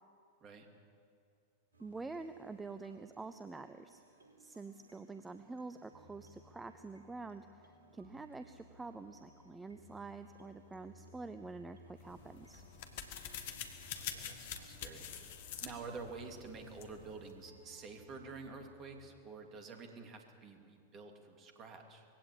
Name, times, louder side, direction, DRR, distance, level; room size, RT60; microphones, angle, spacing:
sound 1, 1.7-19.1, left 1 dB, 70° right, 4.4 m, -62 dB
voice 1, 1.8-4.0 4.4-12.6, right 3 dB, 10° right, 10 dB, 0.7 m, -47 dB
sound 2, 12.0-17.4, left 8 dB, 55° left, 1.8 m, -47 dB
voice 2, 13.8-15.1 15.6-22.1, right 4 dB, 30° right, 4 dB, 3.0 m, -49 dB
21.0 x 16.5 x 8.6 m, 2.3 s
figure-of-eight pair, 90°, 0 cm